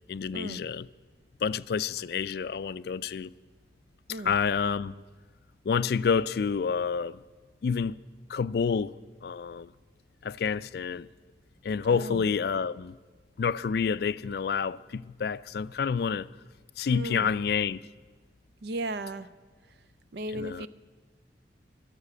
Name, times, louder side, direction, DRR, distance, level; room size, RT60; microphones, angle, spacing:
voice 1, 0.1-0.9 1.4-3.3 4.2-4.9 5.7-7.2 7.6-8.0 8.3-8.9 9.2-9.7 10.2-11.1 11.6-13.0 13.4-16.3 16.8-17.8 20.3-20.7, left 6 dB, 55° left, 0.3 m, -28 dB
voice 2, 11.9-12.2 16.9-17.3 18.6-19.3 20.1-20.7, right 1 dB, 65° right, 0.6 m, -35 dB
13.0 x 11.5 x 8.3 m
head